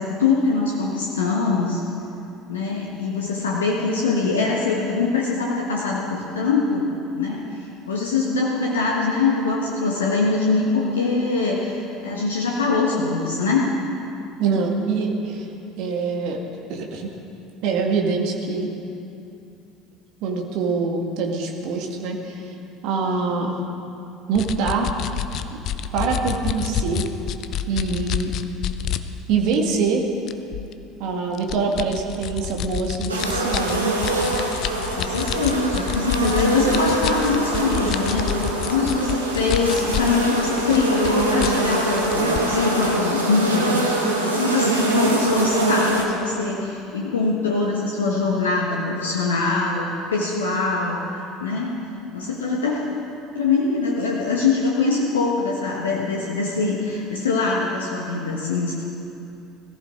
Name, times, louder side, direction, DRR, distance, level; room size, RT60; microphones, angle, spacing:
voice 1, 0.0-1.8 2.5-6.9 7.2-13.6 34.8-43.8 44.2-51.8 52.1-52.8 53.3-58.7, left 4 dB, 80° left, -2 dB, 1.5 m, -23 dB
voice 2, 14.4-15.5 15.8-16.4 16.7-17.1 17.6-18.7 20.2-22.4 22.8-23.6 24.3-24.9 25.5-25.6 25.9-27.0 27.7-28.4 29.3-30.0 31.0-33.9, right 4 dB, 60° right, 1 dB, 2.0 m, -24 dB
sound 1, 24.4-29.0 29.5-29.7 30.3-30.7 31.4-40.2 40.5-42.6, left 10 dB, 50° left, 0.7 m, -28 dB
sound 2, 33.1-46.0, right 2 dB, 85° right, 1.8 m, -23 dB
21.5 x 14.5 x 3.8 m, 2.7 s
figure-of-eight pair, 65°, 0 cm